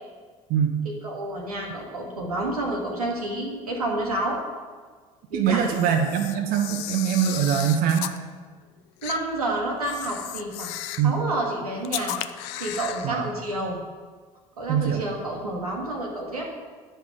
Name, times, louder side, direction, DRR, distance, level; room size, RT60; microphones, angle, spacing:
voice 1, 0.8-4.4 5.3-5.7 9.0-10.7 11.0-12.2 12.6-13.8 14.6-16.5, right 1 dB, 85° right, -1 dB, 1.3 m, -29 dB
voice 2, 5.3-8.1 11.0-11.2 13.0-13.3 14.7-15.0, right 8 dB, 50° right, 3 dB, 0.9 m, -23 dB
Camera, 5.6-8.2 9.0-9.2 9.8-11.1 11.8-13.1, left 13 dB, 60° left, 0.5 m, -34 dB
10.0 x 5.5 x 4.9 m, 1.5 s
figure-of-eight pair, 60°, 19 cm